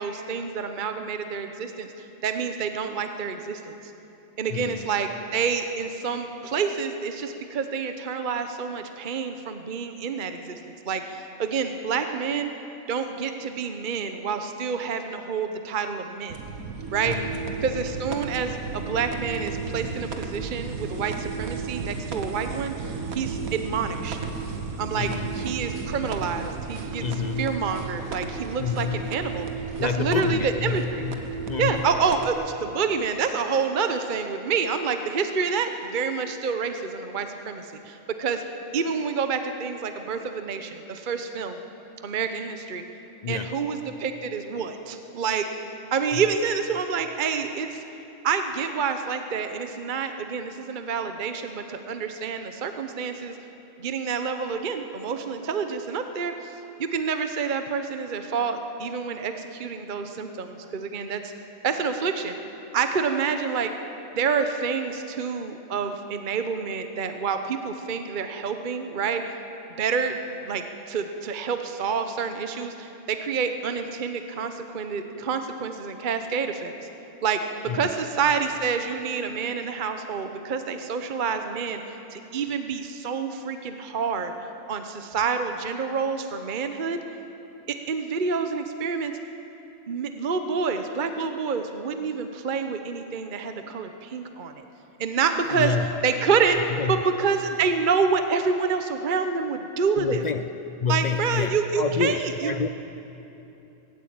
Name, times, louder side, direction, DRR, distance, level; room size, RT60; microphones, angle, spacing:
voice 1, 0.0-3.7 4.4-12.5 12.9-16.4 16.9-17.2 17.6-24.2 24.8-27.0 27.4-29.4 29.8-31.0 31.6-38.4 38.7-41.6 42.0-42.8 43.3-45.5 45.9-47.8 48.2-53.4 53.8-56.5 56.8-61.3 61.6-62.4 62.7-63.7 64.1-69.2 69.8-70.2 70.5-76.8 77.2-84.3 84.7-87.0 87.7-89.1 89.9-94.6 95.0-95.7 96.0-100.2 100.9-102.5, right 5 dB, 40° right, 7 dB, 1.0 m, -28 dB
voice 2, 4.5-4.9 17.0-17.4 25.0-25.3 27.0-27.7 28.6-29.2 29.8-31.9 43.2-43.6 46.1-46.2 77.7-77.9 95.5-96.0 96.7-97.0 100.0-100.5 100.8-102.7, left 6 dB, 60° left, 10 dB, 0.4 m, -28 dB
sound 1, 16.3-32.3, right 5 dB, 85° right, 1.7 m, -34 dB
18.5 x 16.0 x 8.8 m, 3.0 s
omnidirectional pair, 1.5 m